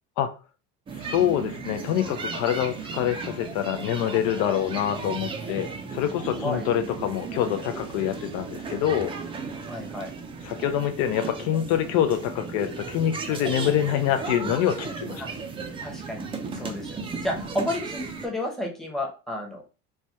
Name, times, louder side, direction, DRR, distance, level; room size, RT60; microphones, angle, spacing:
voice 1, 0.9-9.1 10.4-15.2, left 10 dB, 65° left, 8 dB, 0.5 m, -26 dB
sound 1, 0.9-18.3, right 4 dB, 15° right, 0.4 m, -35 dB
voice 2, 9.7-10.1 15.2-15.3 15.8-16.2 16.5-19.7, left 1 dB, ahead, -1 dB, 0.8 m, -31 dB
3.2 x 2.2 x 2.6 m, 0.33 s
supercardioid pair, 115°, 31 cm